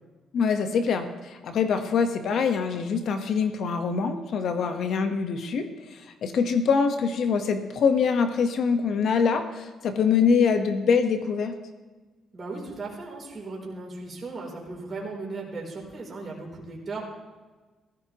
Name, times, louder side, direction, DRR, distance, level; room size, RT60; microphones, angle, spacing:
voice 1, 0.3-11.5, left 5 dB, 65° left, 7 dB, 1.2 m, -24 dB
voice 2, 12.3-17.1, right 3 dB, 40° right, -2 dB, 3.6 m, -37 dB
15.5 x 14.0 x 3.0 m, 1.3 s
cardioid pair, 80°, 0 cm